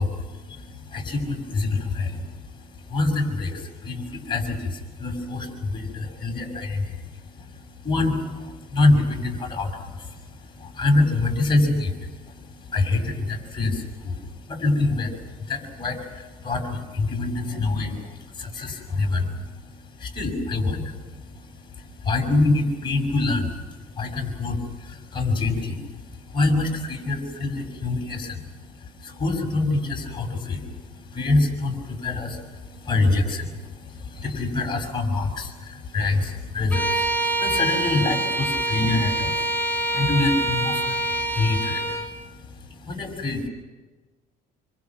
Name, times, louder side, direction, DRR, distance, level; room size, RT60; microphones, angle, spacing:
voice 1, 0.0-43.5, left 2 dB, 30° left, 2 dB, 6.3 m, -26 dB
Bowed string instrument, 36.7-42.1, right 2 dB, 10° left, 3.4 m, -25 dB
26.5 x 25.5 x 6.1 m, 1.3 s
cardioid pair, 110°, 17 cm